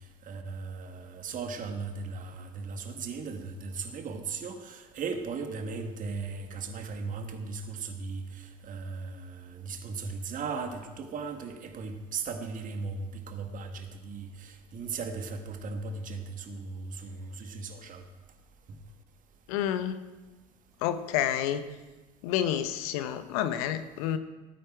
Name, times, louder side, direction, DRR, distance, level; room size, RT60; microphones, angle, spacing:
voice 1, 0.3-18.0, right 4 dB, 45° right, 6 dB, 1.9 m, -37 dB
voice 2, 19.5-20.0 20.8-21.6 22.2-24.2, left 10 dB, 70° left, 11 dB, 0.9 m, -29 dB
18.5 x 9.1 x 4.5 m, 1.2 s
hypercardioid pair, 70°, 19 cm